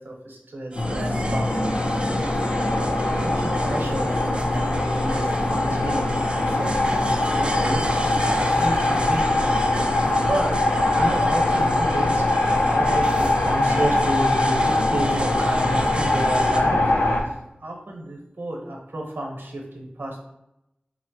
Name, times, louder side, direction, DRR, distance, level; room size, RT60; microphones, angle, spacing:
voice 1, 0.0-2.5 3.0-9.8 10.1-10.6 10.9-17.3 17.6-20.3, right 1 dB, 90° right, 0 dB, 0.9 m, -31 dB
sound 1, 0.7-16.6, right 1 dB, 30° right, 0.4 m, -36 dB
sound 2, 0.8-17.2, left 2 dB, 85° left, 0.7 m, -22 dB
4.2 x 2.0 x 4.5 m, 0.85 s
wide cardioid pair, 55°, 3 cm